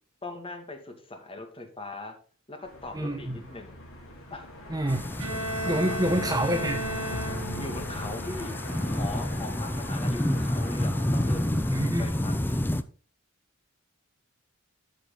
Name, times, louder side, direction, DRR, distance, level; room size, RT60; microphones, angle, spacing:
voice 1, 0.2-2.2 2.5-3.8 4.3-4.5 5.6-6.1 7.6-8.6 8.9-12.3, left 2 dB, 25° left, 5 dB, 2.1 m, -40 dB
sound 1, 2.6-12.8, left 1 dB, 70° left, 3.7 m, -41 dB
voice 2, 2.9-3.4 4.7-5.0 5.7-6.8 11.7-12.1, right 1 dB, 20° right, 5 dB, 1.2 m, -27 dB
sound 2, 4.9-12.8, left 1 dB, 10° left, 0.5 m, -30 dB
Bowed string instrument, 5.2-7.9, right 1 dB, 85° right, 2.7 m, -34 dB
12.0 x 6.5 x 3.9 m, 0.38 s
head